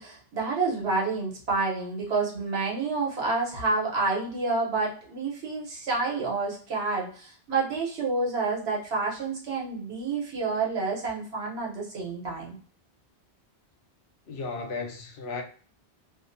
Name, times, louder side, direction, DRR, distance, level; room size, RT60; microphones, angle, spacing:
voice 1, 0.0-12.6, right 3 dB, 75° right, 1.2 m, -29 dB
voice 2, 14.3-15.4, left 4 dB, 75° left, 0.8 m, -34 dB
2.5 x 2.0 x 2.5 m
omnidirectional pair, 1.1 m